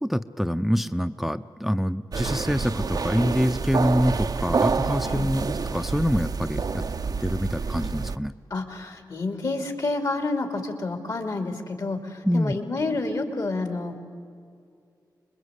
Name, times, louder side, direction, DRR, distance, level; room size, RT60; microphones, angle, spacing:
voice 1, 0.0-6.8 7.2-8.3 12.2-12.5, equal, ahead, 10 dB, 0.6 m, -25 dB
sound 1, 2.1-8.2, right 4 dB, 60° right, 0.7 m, -28 dB
voice 2, 8.5-14.0, left 3 dB, 60° left, 5 dB, 2.9 m, -29 dB
26.0 x 21.5 x 8.2 m, 2.3 s
wide cardioid pair, 70°, 7 cm